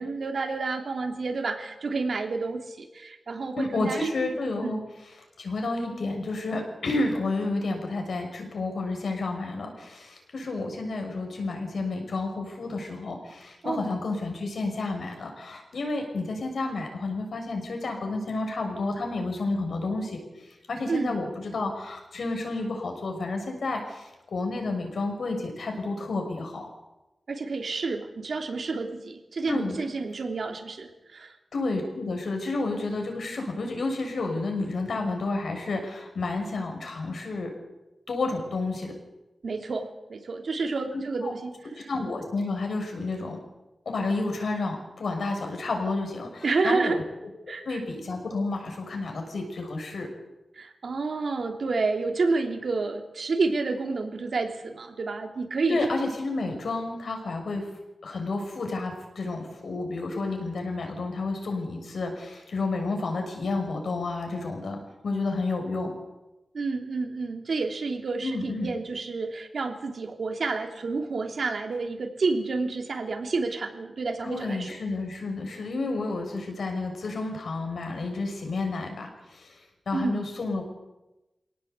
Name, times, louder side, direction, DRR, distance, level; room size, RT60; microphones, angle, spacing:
voice 1, 0.0-4.1 4.6-4.8 13.6-13.9 20.9-21.1 27.3-31.3 39.4-41.5 46.4-47.0 47.5-47.8 50.5-55.8 66.5-74.8 79.9-80.2, right 3 dB, 70° right, 4 dB, 3.2 m, -29 dB
voice 2, 3.6-4.8 5.4-26.7 29.5-29.8 31.5-37.5 38.1-38.9 40.9-41.3 41.9-43.4 43.8-46.9 47.4-50.1 55.7-57.6 58.0-64.8 65.0-65.9 68.2-68.7 74.2-79.6 79.9-80.6, left 3 dB, 90° left, 3 dB, 6.5 m, -30 dB
25.5 x 18.0 x 8.3 m, 1.0 s
wide cardioid pair, 130°, 0 cm